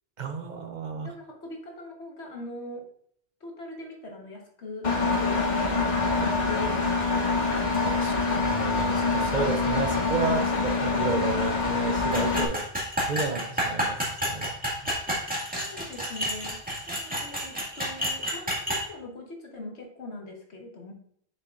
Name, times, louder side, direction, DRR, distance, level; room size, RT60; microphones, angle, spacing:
voice 1, 0.2-1.1 7.9-12.7 13.1-14.0 14.2-14.6 14.8-14.9, right 5 dB, 50° right, 6 dB, 0.6 m, -32 dB
voice 2, 1.0-2.9 3.4-6.9 15.5-16.6 16.9-20.9, left 2 dB, 80° left, 1 dB, 1.6 m, -40 dB
Engine, 4.8-12.5, left 3 dB, 45° left, 0.9 m, -25 dB
sound 1, 12.1-18.8, equal, 10° right, 1.9 m, -30 dB
7.2 x 6.6 x 2.5 m, 0.65 s
omnidirectional pair, 1.1 m